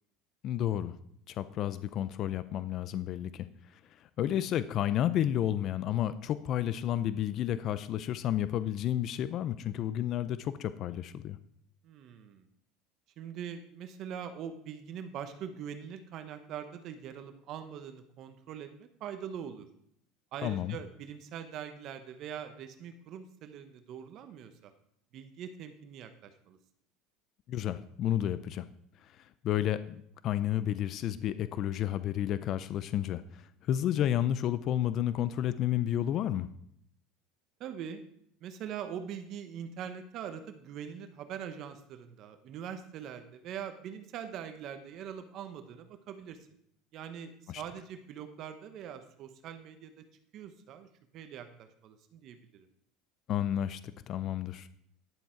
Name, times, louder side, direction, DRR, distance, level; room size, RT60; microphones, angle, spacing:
voice 1, 0.4-1.0 1.3-11.4 20.4-20.8 27.5-28.7 29.0-36.5 47.5-47.6 53.3-54.7, left 11 dB, 45° left, 14 dB, 0.5 m, -31 dB
voice 2, 11.8-12.5 13.2-19.7 20.3-24.7 25.1-26.6 37.6-38.0 38.4-46.4 46.9-49.9 50.3-50.9 51.1-52.7, right 8 dB, 50° right, 8 dB, 0.9 m, -43 dB
11.0 x 7.2 x 4.5 m, 0.69 s
supercardioid pair, 130°, 0 cm